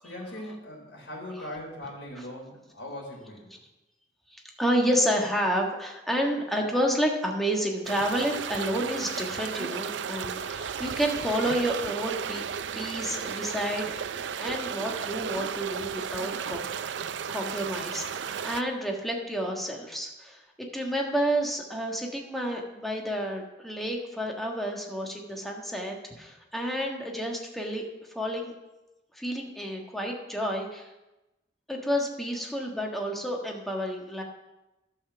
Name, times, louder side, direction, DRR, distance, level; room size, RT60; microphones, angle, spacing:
voice 1, 0.0-3.5, left 1 dB, 75° left, -2 dB, 3.8 m, -40 dB
voice 2, 4.3-12.4 12.7-13.9 14.4-16.7 17.3-20.4 20.7-27.8 28.1-28.5 29.1-30.9 31.7-34.2, equal, ahead, 0 dB, 1.5 m, -30 dB
sound 1, 7.8-18.6, right 7 dB, 85° right, 0.5 m, -34 dB
11.5 x 5.6 x 6.8 m, 0.99 s
head